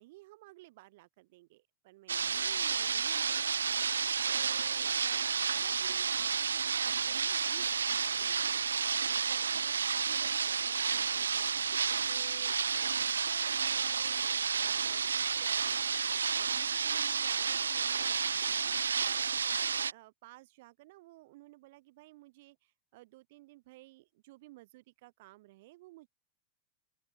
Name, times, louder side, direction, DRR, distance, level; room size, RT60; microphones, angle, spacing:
voice 1, 0.0-3.5 4.2-15.8 16.3-26.1, right 20 dB, 50° right, 3.5 m, -56 dB
sound 1, 2.1-19.9, right 6 dB, 70° right, 0.3 m, -31 dB
open air
figure-of-eight pair, 90°, 0 cm